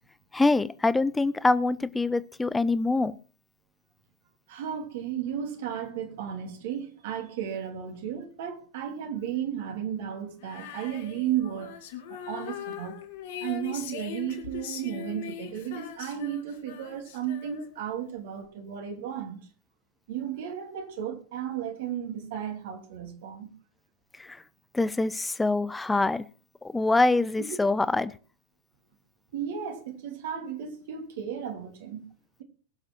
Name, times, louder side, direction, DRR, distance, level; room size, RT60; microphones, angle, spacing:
voice 1, 0.3-3.2 24.2-24.4 24.7-26.2 26.7-28.1, left 3 dB, 10° left, 0.7 m, -24 dB
voice 2, 4.5-11.7 12.1-13.0 13.4-19.5 20.1-23.5 27.4-27.6 29.3-32.1, right 9 dB, 55° right, 2.8 m, -34 dB
Female singing, 10.4-17.9, left 9 dB, 55° left, 2.5 m, -41 dB
21.5 x 7.5 x 4.4 m
figure-of-eight pair, 90°, 0 cm